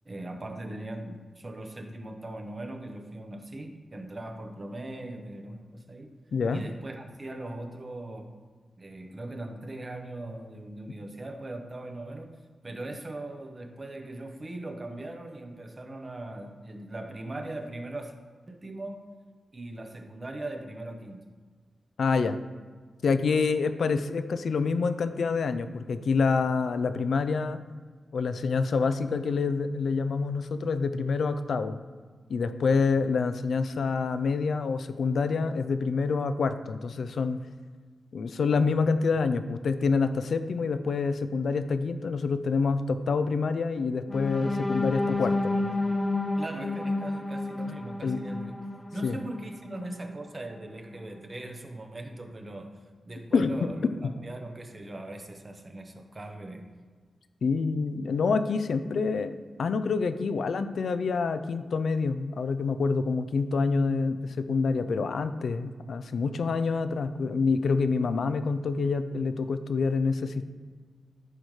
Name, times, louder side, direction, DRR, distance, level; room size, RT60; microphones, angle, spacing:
voice 1, 0.0-6.2 6.5-8.4 8.8-18.2 18.5-19.0 19.5-21.3 44.9-52.8 53.1-53.9 54.2-56.7, right 1 dB, 25° right, 4 dB, 0.8 m, -40 dB
voice 2, 6.3-6.6 22.0-22.4 23.0-27.6 28.1-31.8 32.3-37.4 38.1-45.6 48.0-48.2 49.0-49.2 53.3-53.7 57.4-70.5, left 4 dB, 70° left, 10 dB, 0.5 m, -27 dB
sound 1, 44.1-50.0 50.5-50.7 51.0-51.3, left 2 dB, 15° left, 0.6 m, -31 dB
14.5 x 5.0 x 3.2 m, 1.5 s
wide cardioid pair, 155°, 0 cm